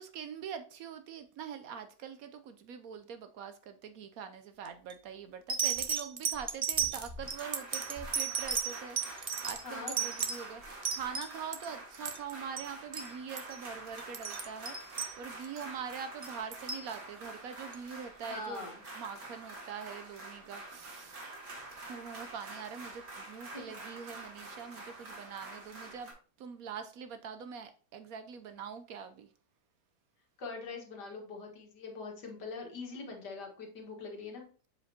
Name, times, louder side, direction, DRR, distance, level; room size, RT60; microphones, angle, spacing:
voice 1, 0.0-21.2 21.9-26.1 26.4-29.3, right 7 dB, 70° right, 0.9 m, -44 dB
sound 1, 4.6-4.9 5.5-11.6 11.9-12.7 12.9-13.1 13.4-13.6 14.0-15.6 16.2-16.9 17.7-17.8, right 6 dB, 45° right, 0.4 m, -34 dB
sound 2, 7.2-26.1, right 2 dB, 85° right, 2.3 m, -47 dB
voice 2, 9.6-10.1 18.3-18.8 23.5-23.7 30.4-34.5, left 4 dB, 85° left, 2.1 m, -43 dB
7.4 x 5.1 x 2.8 m
omnidirectional pair, 1.7 m